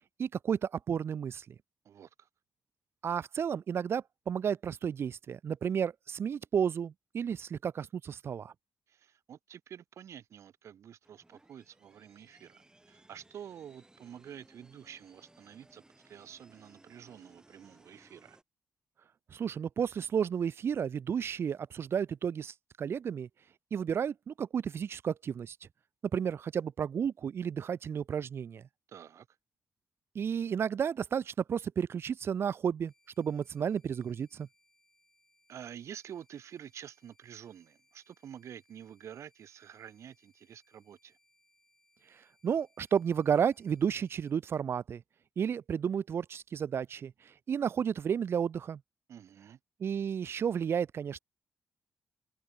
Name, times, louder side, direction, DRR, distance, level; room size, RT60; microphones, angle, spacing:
voice 1, 0.2-1.4 3.0-8.5 19.3-23.3 23.7-25.6 26.1-28.6 30.1-34.5 42.4-45.0 45.4-47.1 47.5-48.8 49.8-51.2, right 7 dB, 55° right, 0.4 m, -32 dB
voice 2, 1.8-2.3 8.9-18.4 28.9-29.3 35.5-41.2 49.1-49.6, right 9 dB, 70° right, 1.7 m, -49 dB
sound 1, 11.0-18.4, right 2 dB, 15° right, 6.7 m, -62 dB
sound 2, 32.9-44.3, left 1 dB, 10° left, 6.4 m, -72 dB
cardioid pair, 95°, 5 cm